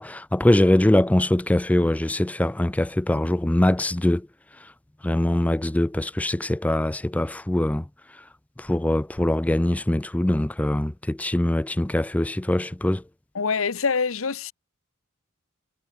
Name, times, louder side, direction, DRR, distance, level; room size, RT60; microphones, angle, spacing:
voice 1, 0.0-4.3 5.0-7.8 8.6-13.0, left 1 dB, 5° left, 0.3 m, -22 dB
voice 2, 13.3-14.5, left 5 dB, 80° left, 0.9 m, -25 dB
head